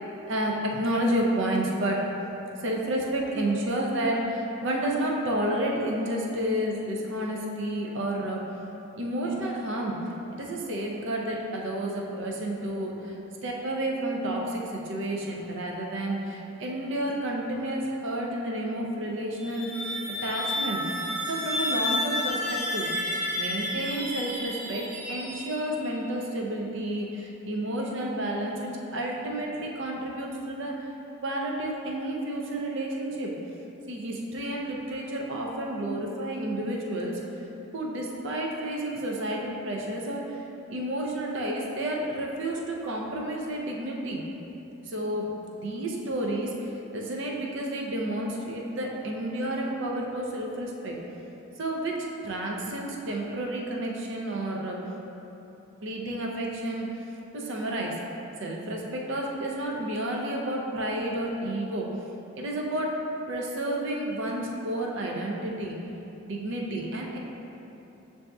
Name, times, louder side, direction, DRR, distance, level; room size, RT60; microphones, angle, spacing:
voice 1, 0.3-2.0 2.6-8.4 8.9-10.0 10.3-13.1 13.4-19.9 20.2-20.8 21.3-22.9 23.3-30.9 31.2-33.3 33.9-37.2 37.7-40.4 40.7-44.2 44.9-51.0 51.6-52.0 52.2-54.8 55.8-57.0 57.3-58.0 58.4-61.9 62.4-63.0 63.3-65.8 66.2-67.2, right 1 dB, 55° right, -1 dB, 0.5 m, -30 dB
sound 1, 19.4-25.9, left 1 dB, 15° right, 0.8 m, -31 dB
7.6 x 2.7 x 2.3 m, 3.0 s
head